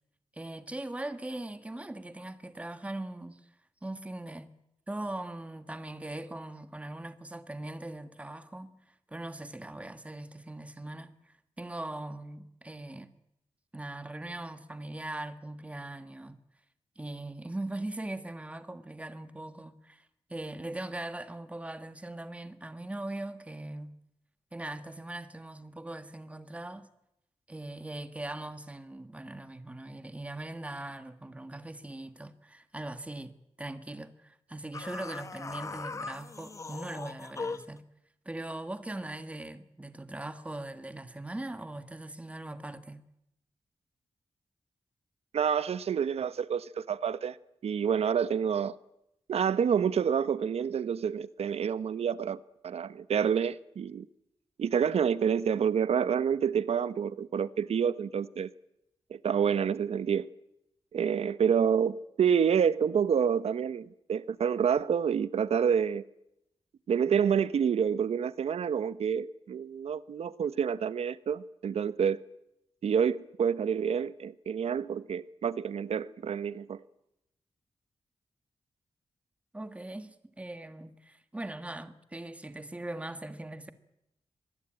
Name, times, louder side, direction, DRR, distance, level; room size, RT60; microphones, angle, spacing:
voice 1, 0.3-3.4 3.8-4.5 4.9-8.8 9.1-13.1 13.7-16.4 17.0-24.0 24.5-26.9 27.5-33.3 33.6-37.9 38.2-43.0 79.5-83.7, right 1 dB, 15° right, 1.5 m, -40 dB
sound 1, 34.7-37.8, left 4 dB, 30° left, 0.8 m, -39 dB
voice 2, 45.3-47.4 47.6-48.7 49.3-54.1 54.6-58.5 59.1-60.3 60.9-66.0 66.9-72.2 72.8-76.8, right 7 dB, 85° right, 0.9 m, -28 dB
24.0 x 19.5 x 8.9 m
wide cardioid pair, 155°, 10 cm